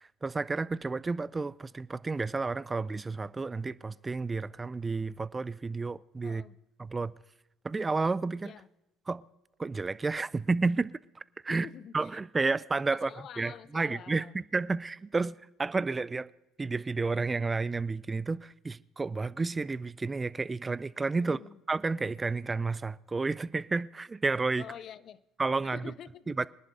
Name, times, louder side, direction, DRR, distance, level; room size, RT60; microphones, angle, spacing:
voice 1, 0.0-6.4 6.8-7.1 7.6-8.5 9.1-9.2 9.6-11.7 11.9-13.1 13.4-14.3 14.5-16.3 16.6-21.4 21.7-24.6 25.4-25.8 26.4-26.5, right 3 dB, 25° right, 0.4 m, -31 dB
voice 2, 6.2-6.6 8.4-8.7 11.5-12.5 12.9-14.3 21.2-21.6 24.6-25.2 25.7-26.4, left 9 dB, 50° left, 0.5 m, -47 dB
25.0 x 11.0 x 2.6 m
hypercardioid pair, 65°, 0 cm